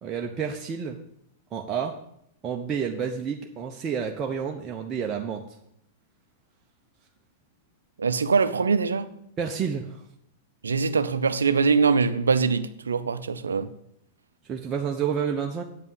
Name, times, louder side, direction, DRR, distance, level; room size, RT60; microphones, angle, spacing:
voice 1, 0.0-1.0 1.5-2.0 2.4-5.4 9.4-10.0 14.4-15.6, right 7 dB, 30° right, 0.9 m, -29 dB
voice 2, 8.0-9.1 10.6-13.7, right 5 dB, 80° right, 0.6 m, -23 dB
8.5 x 5.5 x 7.8 m
figure-of-eight pair, 100°, 0 cm